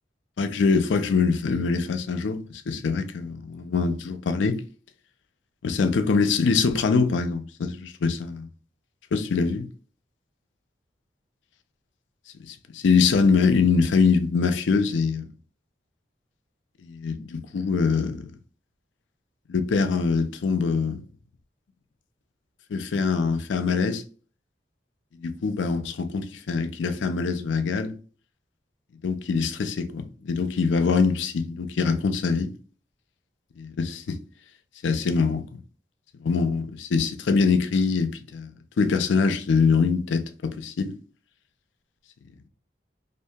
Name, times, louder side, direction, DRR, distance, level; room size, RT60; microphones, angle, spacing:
voice 1, 0.4-4.6 5.6-8.5 9.1-9.7 12.4-15.3 16.8-18.3 19.5-21.0 22.7-24.0 25.2-27.9 29.0-32.5 33.6-34.2 34.8-35.6 36.2-41.0, left 5 dB, 85° left, 0.4 m, -24 dB
2.8 x 2.5 x 2.2 m
head